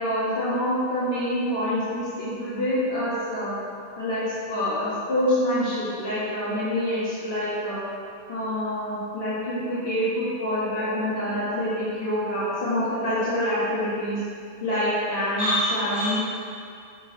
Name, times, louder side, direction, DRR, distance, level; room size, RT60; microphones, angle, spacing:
voice 1, 0.0-3.5 4.0-7.8 8.3-14.2 14.6-16.2, left 1 dB, 75° left, -12 dB, 2.0 m, -26 dB
7.0 x 6.5 x 4.0 m, 2.2 s
omnidirectional pair, 1.0 m